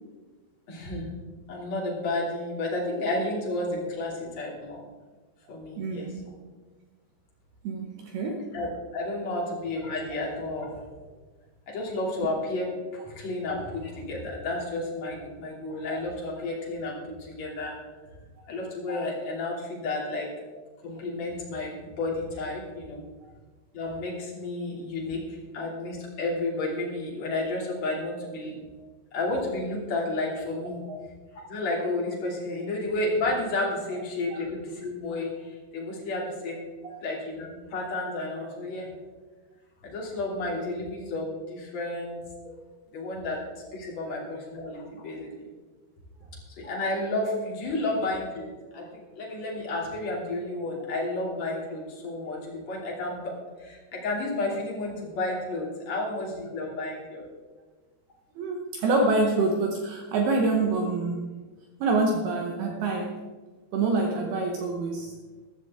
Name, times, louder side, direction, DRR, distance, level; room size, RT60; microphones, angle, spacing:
voice 1, 0.7-1.1 1.5-4.8 5.5-6.1 8.5-8.7 8.9-10.8 11.7-17.8 18.5-20.3 20.8-23.0 23.7-28.5 29.1-30.8 31.5-36.6 37.0-38.9 39.8-42.5 42.9-43.4 43.7-45.3 46.6-53.3 53.6-57.3, left 2 dB, 40° left, -3 dB, 3.3 m, -31 dB
voice 2, 5.8-6.2 7.6-8.5 30.9-31.0 34.3-34.4 36.8-37.0 47.9-48.0 56.0-56.1 58.4-61.4 61.8-63.2 63.7-65.2, right 3 dB, 75° right, 3 dB, 2.3 m, -26 dB
14.5 x 13.5 x 3.6 m, 1.3 s
omnidirectional pair, 5.8 m